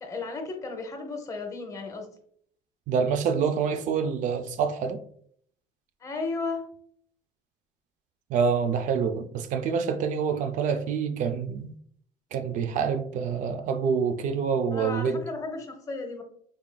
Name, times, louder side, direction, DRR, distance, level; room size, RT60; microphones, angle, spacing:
voice 1, 0.0-2.1 6.0-6.6 14.7-16.2, left 3 dB, 25° left, 0.8 m, -34 dB
voice 2, 2.9-5.0 8.3-11.8 12.3-15.2, right 6 dB, 60° right, 0.4 m, -26 dB
3.7 x 3.5 x 2.2 m
cardioid pair, 125°, 15 cm